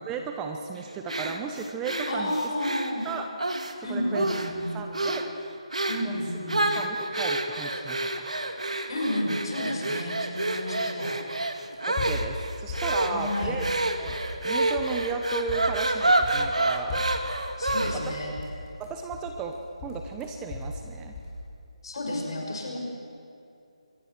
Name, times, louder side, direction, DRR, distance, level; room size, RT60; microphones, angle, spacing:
voice 1, 0.0-2.3 3.0-3.3 3.9-4.3 4.7-5.2 6.0-6.2 6.7-8.3 11.9-13.7 14.0-14.1 14.4-17.0 17.9-18.0 18.8-19.6 19.8-21.2, right 6 dB, 10° right, 4 dB, 0.9 m, -35 dB
sound 1, 1.1-3.7 4.1-4.6 4.9-5.3 5.7-6.1 6.5-18.2, right 2 dB, 85° right, 2.2 m, -28 dB
voice 2, 2.1-3.1 3.8-4.8 5.9-6.7 8.9-11.1 13.0-13.6 17.6-18.4 21.8-22.8, left 1 dB, 50° left, 0 dB, 6.6 m, -31 dB
sound 2, 11.5-12.4 12.7-13.7 14.1-14.5 14.8-15.0 15.3-16.5 16.9-19.5 19.8-20.8 21.1-21.4, left 2 dB, 25° left, 5.6 m, -36 dB
25.0 x 20.5 x 6.3 m, 2.6 s
figure-of-eight pair, 155°, 4 cm